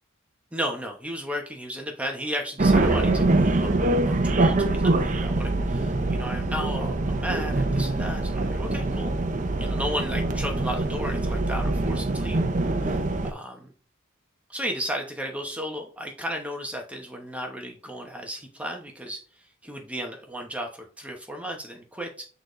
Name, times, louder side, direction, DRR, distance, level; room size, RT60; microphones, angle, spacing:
voice 1, 0.5-9.1 9.6-12.4 12.8-13.0 13.2-13.7 14.5-22.3, equal, 5° right, 2 dB, 0.9 m, -34 dB
sound 1, 2.6-13.3, right 2 dB, 35° right, 0.7 m, -24 dB
8.7 x 4.0 x 3.1 m, 0.40 s
head